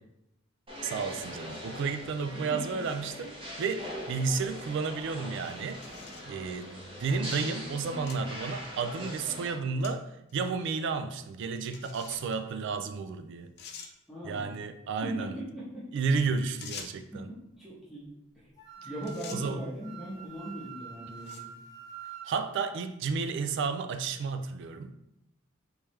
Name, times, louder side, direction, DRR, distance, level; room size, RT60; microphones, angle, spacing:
sound 1, 0.7-9.5, equal, 25° right, 0.9 m, -42 dB
voice 1, 0.8-5.8 6.3-10.0 10.3-13.5 14.2-15.3 15.9-17.3 19.3-19.6 22.2-24.9, right 5 dB, 65° right, 9 dB, 0.3 m, -32 dB
sound 2, 5.4-6.3 7.1-7.2 8.1-8.2 8.6-8.7 9.8-9.9 10.3-10.4 11.7-12.4 13.1-13.2 13.6-13.9 16.6-17.1 18.5-18.7 19.0-19.4 20.2-20.5 21.1-21.6, left 6 dB, 55° left, 0.4 m, -46 dB
voice 2, 14.1-14.5 15.0-15.8 17.1-18.1 18.3-18.5 18.8-21.5, right 1 dB, ahead, -10 dB, 0.9 m, -40 dB
Wind instrument woodwind instrument, 18.6-22.3, right 8 dB, 20° left, 0.7 m, -46 dB
3.5 x 3.2 x 3.1 m, 0.85 s
head